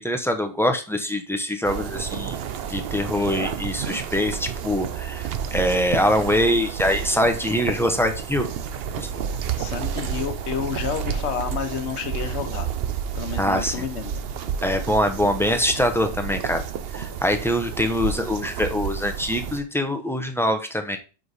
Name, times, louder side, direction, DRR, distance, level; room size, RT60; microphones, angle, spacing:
voice 1, 0.0-2.4 2.7-8.5 9.0-9.1 13.4-13.8 14.6-16.6 16.9-21.0, left 1 dB, 5° left, 5 dB, 0.3 m, -23 dB
sound 1, 1.6-19.6, right 8 dB, 60° right, 0.7 m, -30 dB
voice 2, 9.6-12.7 13.1-14.2, left 7 dB, 65° left, 7 dB, 1.1 m, -30 dB
5.0 x 4.8 x 4.0 m, 0.33 s
omnidirectional pair, 1.3 m